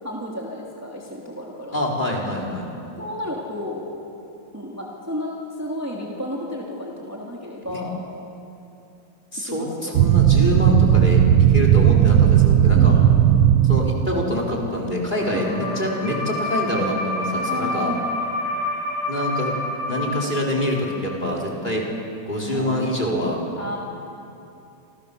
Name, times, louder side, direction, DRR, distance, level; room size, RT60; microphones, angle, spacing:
voice 1, 0.0-1.8 3.0-3.9 4.5-8.0 9.4-10.0 12.7-13.2 15.3-15.7 17.5-18.2 22.5-22.8 23.6-23.8, equal, 5° right, -3 dB, 3.0 m, -32 dB
voice 2, 1.7-2.7 7.7-7.8 9.3-11.2 11.5-12.9 13.6-17.9 19.1-19.5 19.9-21.8 22.3-23.4, left 1 dB, 20° left, -2 dB, 4.4 m, -25 dB
sound 1, 9.9-14.2, right 10 dB, 85° right, 1.7 m, -15 dB
sound 2, 15.1-20.9, left 2 dB, 55° left, 4.3 m, -28 dB
28.5 x 28.0 x 7.1 m, 2.7 s
omnidirectional pair, 2.2 m